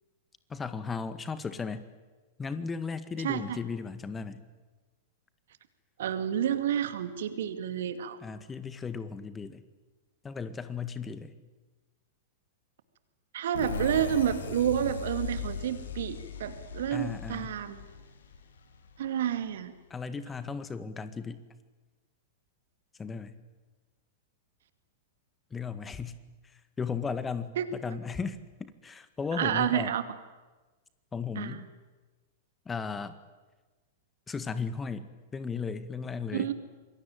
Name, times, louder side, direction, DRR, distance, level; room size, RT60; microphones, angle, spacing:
voice 1, 0.5-1.9 2.4-4.4 8.2-9.6 10.2-11.3 16.9-17.6 19.9-21.4 23.0-23.4 25.5-26.2 26.5-29.9 31.1-31.6 32.7-33.2 34.3-35.1 35.3-36.5, left 5 dB, 15° left, 12 dB, 1.8 m, -36 dB
voice 2, 3.2-3.6 6.0-8.2 13.3-17.8 19.0-19.7 27.6-27.7 29.4-30.0 31.4-31.7 36.3-36.5, right 10 dB, 60° right, 10 dB, 2.5 m, -30 dB
sound 1, 13.5-19.1, left 6 dB, 70° left, 3.5 m, -38 dB
26.5 x 22.5 x 9.3 m, 1.2 s
figure-of-eight pair, 100°, 0 cm